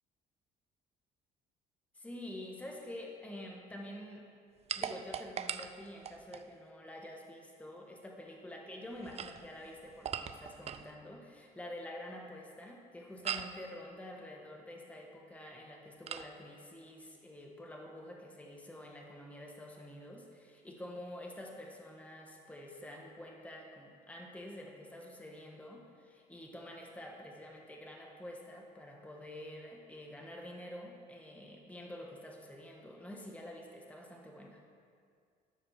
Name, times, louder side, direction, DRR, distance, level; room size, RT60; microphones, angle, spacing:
voice 1, 1.9-4.3 4.8-34.6, left 1 dB, 10° left, 0 dB, 1.2 m, -48 dB
sound 1, 4.7-6.5 8.9-10.9 13.2-13.6 16.1-16.3, right 8 dB, 40° right, 0.5 m, -40 dB
13.0 x 4.9 x 6.4 m, 2.2 s
cardioid pair, 110°, 17 cm